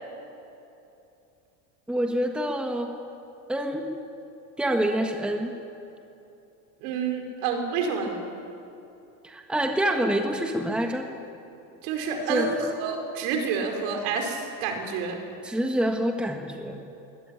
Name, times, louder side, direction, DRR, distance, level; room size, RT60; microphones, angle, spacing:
voice 1, 1.9-2.9 3.5-3.8 4.6-5.5 9.2-11.0 12.3-12.5 15.4-16.8, right 1 dB, ahead, 3 dB, 1.6 m, -26 dB
voice 2, 6.8-8.2 11.8-15.2, right 5 dB, 65° right, 3 dB, 5.3 m, -28 dB
23.5 x 20.0 x 9.0 m, 2.8 s
supercardioid pair, 150°, 42 cm